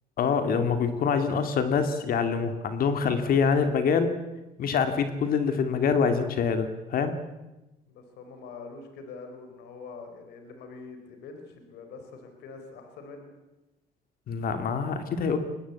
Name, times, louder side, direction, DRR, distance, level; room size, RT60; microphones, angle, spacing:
voice 1, 0.2-4.2 4.6-7.2 14.3-15.4, left 6 dB, 60° left, 8 dB, 2.5 m, -25 dB
voice 2, 7.9-13.3, left 4 dB, 80° left, 6 dB, 4.5 m, -44 dB
23.0 x 19.0 x 8.4 m, 1.0 s
cardioid pair, 110°, 17 cm